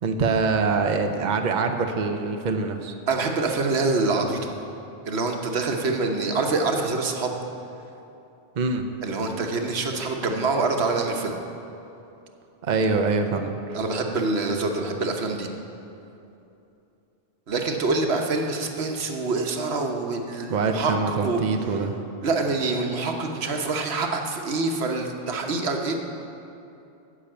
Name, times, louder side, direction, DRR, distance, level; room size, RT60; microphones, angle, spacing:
voice 1, 0.0-2.9 8.6-8.8 12.6-13.8 20.5-22.0, right 4 dB, 50° right, 5 dB, 0.8 m, -24 dB
voice 2, 3.1-4.5 5.0-7.4 9.0-11.4 13.7-15.5 17.5-21.4 22.2-26.0, right 3 dB, 90° right, 3 dB, 1.3 m, -25 dB
9.8 x 6.9 x 8.8 m, 2.8 s
omnidirectional pair, 1.1 m